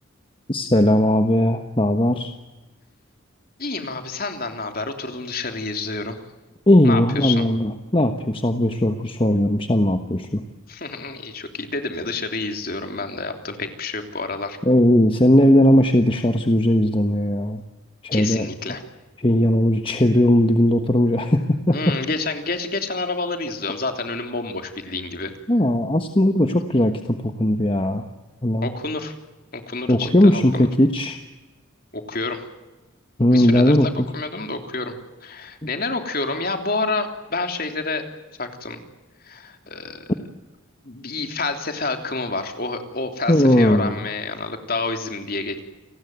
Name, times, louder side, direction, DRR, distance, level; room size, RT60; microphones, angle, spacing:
voice 1, 0.5-2.3 6.7-10.4 14.7-17.6 18.0-18.5 19.2-21.9 25.5-28.1 28.4-28.7 29.9-31.2 33.2-34.1 43.3-44.0, left 1 dB, 25° left, 6 dB, 1.2 m, -18 dB
voice 2, 3.6-6.2 6.8-7.4 10.7-14.6 18.1-18.8 21.7-25.3 28.6-29.1 29.5-30.7 31.9-32.4 33.3-34.9 35.2-38.0 38.4-38.8 39.2-40.0 40.8-45.6, left 3 dB, 45° left, 5 dB, 3.3 m, -28 dB
29.5 x 19.5 x 9.4 m, 1.2 s
head